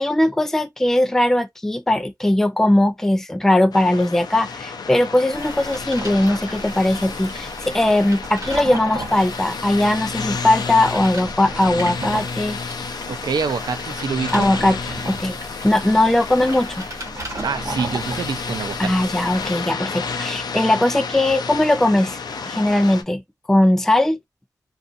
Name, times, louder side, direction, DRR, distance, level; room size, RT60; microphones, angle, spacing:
voice 1, 0.0-12.6 14.3-14.8 15.1-15.4 15.6-16.8 18.8-22.2 22.5-23.2 23.5-24.2, left 1 dB, 5° left, 0.4 m, -19 dB
sound 1, 3.7-23.0, left 5 dB, 85° left, 0.5 m, -31 dB
sound 2, 5.3-19.5, right 1 dB, 45° right, 1.2 m, -35 dB
voice 2, 13.1-14.5 17.4-18.9, right 5 dB, 80° right, 0.5 m, -26 dB
2.5 x 2.4 x 2.7 m
wide cardioid pair, 90°, 7 cm